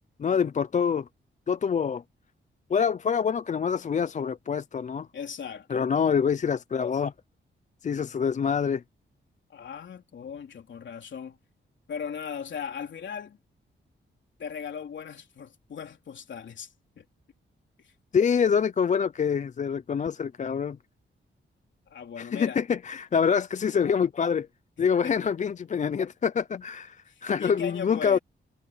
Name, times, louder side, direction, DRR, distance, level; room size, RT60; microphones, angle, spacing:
voice 1, 0.2-1.1 1.5-2.0 2.7-5.1 5.7-7.1 7.8-8.8 18.1-20.8 22.2-24.5 24.8-28.2, left 7 dB, 35° left, 0.4 m, -26 dB
voice 2, 5.1-5.9 9.5-11.4 11.9-13.4 14.4-17.0 17.8-17.9 21.9-22.6 24.8-25.2 27.1-28.2, left 7 dB, 65° left, 3.4 m, -38 dB
wide cardioid pair, 145°, 20 cm